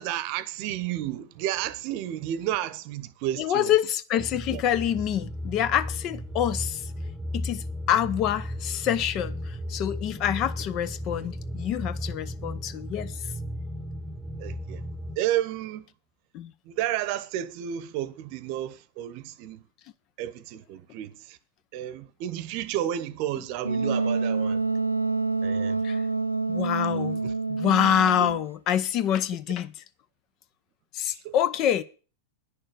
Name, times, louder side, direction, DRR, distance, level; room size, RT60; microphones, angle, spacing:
voice 1, 0.0-3.7 4.5-4.6 14.4-14.8 15.2-15.8 16.7-19.6 20.2-21.4 21.7-24.6 25.4-25.8 26.9-27.3 31.1-31.4, right 12 dB, 45° right, 0.9 m, -32 dB
voice 2, 3.4-6.9 7.3-13.2 16.3-16.5 25.8-26.0 26.5-27.2 27.5-29.7 30.9-31.8, left 10 dB, 40° left, 0.8 m, -26 dB
sound 1, 4.2-15.2, left 1 dB, 10° right, 1.1 m, -35 dB
Wind instrument woodwind instrument, 23.6-28.5, right 3 dB, 85° right, 0.6 m, -27 dB
10.0 x 6.5 x 9.0 m
figure-of-eight pair, 90°, 0 cm